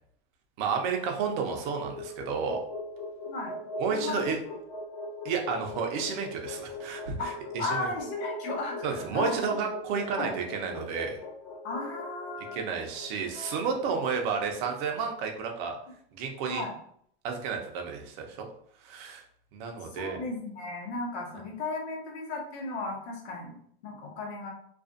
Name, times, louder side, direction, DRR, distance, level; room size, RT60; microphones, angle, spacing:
voice 1, 0.6-2.6 3.8-4.4 5.2-7.1 7.5-7.9 8.8-11.2 12.5-15.8 16.1-16.6 17.2-18.5 18.8-19.2 19.5-20.2, right 5 dB, 50° right, 2 dB, 0.6 m, -31 dB
sound 1, 0.9-15.1, left 2 dB, 35° left, 0.5 m, -40 dB
voice 2, 3.3-4.2 7.2-9.5 10.2-10.4 11.6-12.8 13.3-13.9 16.4-16.7 19.9-23.5 23.8-24.5, left 3 dB, 85° left, 0 dB, 1.0 m, -35 dB
2.5 x 2.3 x 2.5 m, 0.64 s
supercardioid pair, 140°, 32 cm